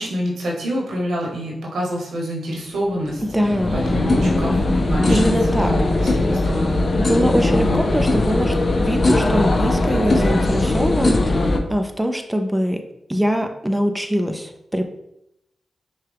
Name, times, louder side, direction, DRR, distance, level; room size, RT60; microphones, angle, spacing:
voice 1, 0.0-6.9 7.5-7.8, equal, 85° right, -2 dB, 1.1 m, -27 dB
sound 1, 2.8-11.6, left 2 dB, 50° left, 0.6 m, -19 dB
voice 2, 3.3-3.8 5.1-5.7 7.0-12.8 13.1-14.9, equal, 5° right, 5 dB, 0.5 m, -22 dB
5.5 x 2.3 x 3.5 m, 0.84 s
cardioid pair, 45°, 0 cm